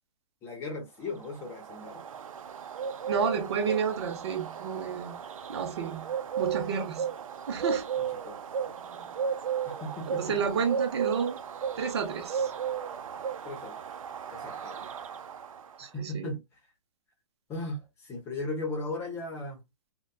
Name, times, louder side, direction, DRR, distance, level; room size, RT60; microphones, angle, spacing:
voice 1, 0.4-2.0 8.2-8.4 9.6-10.4 13.4-13.8 14.3-14.8 15.8-16.4 17.5-19.6, left 2 dB, 15° left, 0.9 m, -37 dB
Bird, 1.1-15.8, right 7 dB, 85° right, 0.6 m, -35 dB
voice 2, 3.1-5.2 5.5-6.1 6.4-7.1 7.5-7.9 8.9-9.0 10.1-11.4 11.8-12.5 14.8-14.9 15.8-16.3, right 6 dB, 55° right, 0.9 m, -31 dB
4.0 x 2.3 x 2.3 m
hypercardioid pair, 165°, 17 cm